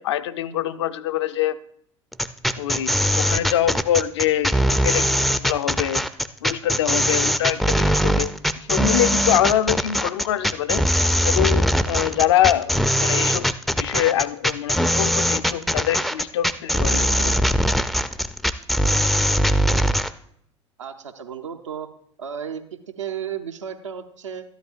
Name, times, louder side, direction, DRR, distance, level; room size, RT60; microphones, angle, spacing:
voice 1, 0.0-1.6 2.6-6.0 6.4-10.8 11.2-13.5 13.8-17.3, left 12 dB, 65° left, 11 dB, 0.5 m, -24 dB
sound 1, 2.1-20.1, equal, ahead, 0.4 m, -21 dB
voice 2, 20.8-21.9 22.2-24.4, right 8 dB, 75° right, 6 dB, 0.7 m, -33 dB
13.0 x 11.5 x 2.4 m, 0.67 s
figure-of-eight pair, 70°, 16 cm